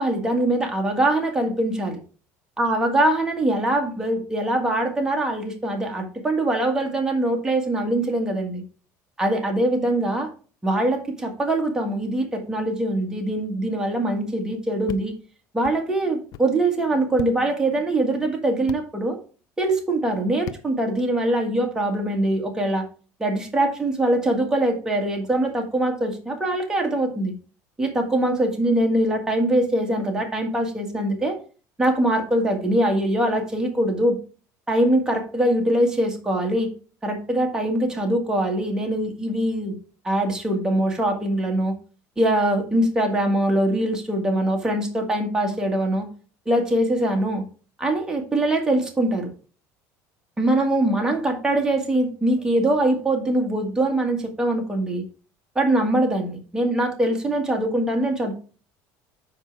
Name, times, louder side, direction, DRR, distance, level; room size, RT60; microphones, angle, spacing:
voice 1, 0.0-2.0 2.6-8.6 9.2-10.3 10.6-15.1 15.5-19.2 19.6-22.8 23.2-27.3 27.8-31.4 31.8-34.2 34.7-36.7 37.0-39.8 40.0-41.7 42.2-46.1 46.5-47.4 47.8-49.3 50.4-55.0 55.6-58.3, right 1 dB, 10° right, 1 dB, 1.7 m, -23 dB
sound 1, 14.9-15.0 15.6-15.8 16.3-16.5 17.2-17.3 18.7-18.8 20.4-20.6, left 11 dB, 55° left, 0.5 m, -36 dB
7.4 x 4.8 x 4.6 m, 0.38 s
cardioid pair, 130°, 7 cm